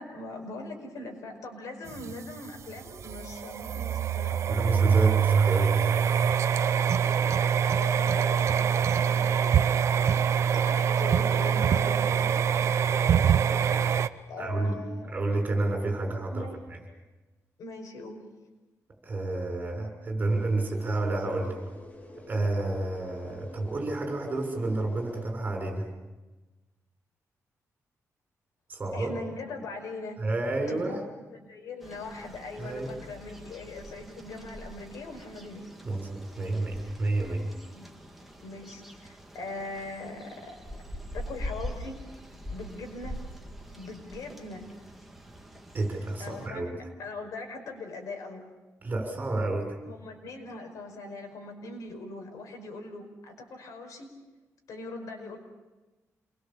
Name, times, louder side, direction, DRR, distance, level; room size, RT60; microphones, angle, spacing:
voice 1, 0.0-4.4 7.7-8.5 8.9-9.2 10.5-12.2 14.3-15.1 16.3-16.6 17.6-18.2 28.9-30.2 30.7-35.7 37.7-37.9 38.4-40.5 41.1-42.0 42.5-43.2 43.8-44.7 46.2-46.7 47.0-48.4 49.9-54.1 54.7-55.4, left 2 dB, 85° left, 4 dB, 5.3 m, -40 dB
sound 1, 1.9-14.1, right 8 dB, 55° right, 0.8 m, -24 dB
voice 2, 4.5-6.2 14.4-14.8 15.1-16.8 19.0-21.6 22.3-25.9 28.7-29.1 30.2-31.0 32.6-33.0 35.8-37.5 45.7-46.8 48.8-49.8, right 2 dB, 30° right, 2 dB, 6.5 m, -30 dB
sound 2, 20.3-25.3, left 1 dB, 25° left, 2.9 m, -47 dB
sound 3, 31.8-46.5, equal, 5° right, 2.1 m, -44 dB
28.0 x 22.0 x 7.3 m, 1.1 s
wide cardioid pair, 155°, 6 cm